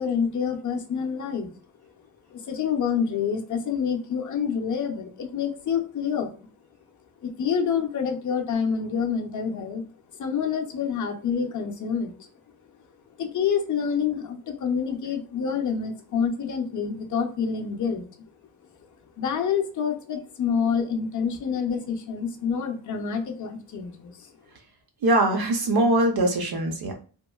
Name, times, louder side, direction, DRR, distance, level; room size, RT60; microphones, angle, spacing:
voice 1, 0.0-1.5 2.3-6.3 7.2-9.8 10.2-12.3 13.2-18.1 19.2-24.2, left 6 dB, 40° left, 3 dB, 0.5 m, -27 dB
voice 2, 25.0-26.9, right 1 dB, 50° right, 3 dB, 0.7 m, -22 dB
2.9 x 2.4 x 2.2 m, 0.38 s
wide cardioid pair, 130°, 47 cm